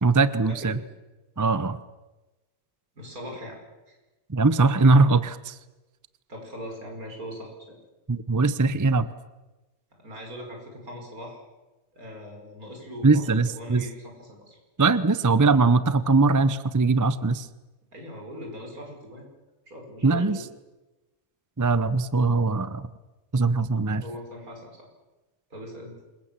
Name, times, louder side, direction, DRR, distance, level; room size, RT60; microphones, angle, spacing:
voice 1, 0.0-0.8 1.4-1.8 4.3-5.5 8.1-9.1 13.0-13.8 14.8-17.5 20.0-20.4 21.6-22.9 23.3-24.0, right 3 dB, 20° right, 14 dB, 0.6 m, -21 dB
voice 2, 3.0-3.6 3.9-4.0 6.3-7.8 10.0-11.4 11.9-13.3 13.5-14.6 17.9-19.3 19.7-20.4 24.0-24.7 25.5-25.9, equal, 75° right, 1 dB, 6.2 m, -40 dB
27.0 x 22.0 x 7.5 m, 1.1 s
omnidirectional pair, 1.6 m